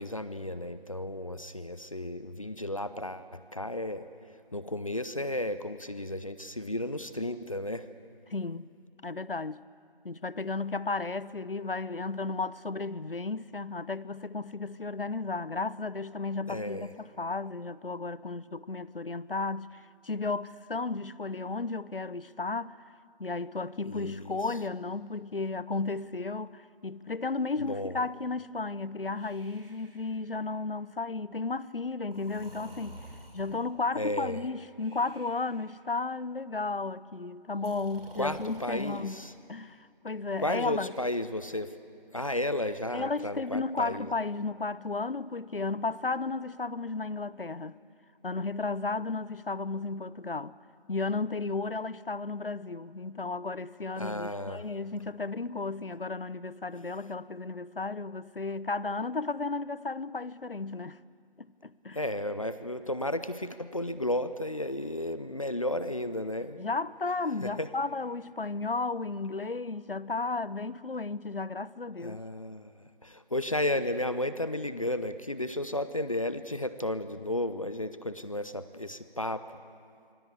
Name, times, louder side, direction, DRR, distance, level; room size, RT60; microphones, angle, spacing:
voice 1, 0.0-4.1 4.5-7.9 16.5-16.9 23.9-24.4 27.6-28.0 34.0-34.5 38.2-39.3 40.4-41.7 42.1-44.1 54.0-54.6 61.9-66.6 67.4-67.7 72.0-79.6, left 1 dB, 35° left, 0.8 m, -33 dB
voice 2, 8.3-8.7 9.0-9.6 10.0-22.8 23.2-33.0 33.3-39.2 39.5-40.9 42.9-47.8 48.2-50.5 50.9-61.0 61.4-62.0 66.6-72.2, left 3 dB, 70° left, 0.9 m, -34 dB
Breathing, 29.1-30.7 32.1-33.8 34.8-35.8 37.6-39.0 40.3-41.5, right 1 dB, 80° right, 6.3 m, -51 dB
27.5 x 24.5 x 8.3 m
figure-of-eight pair, 165°, 29 cm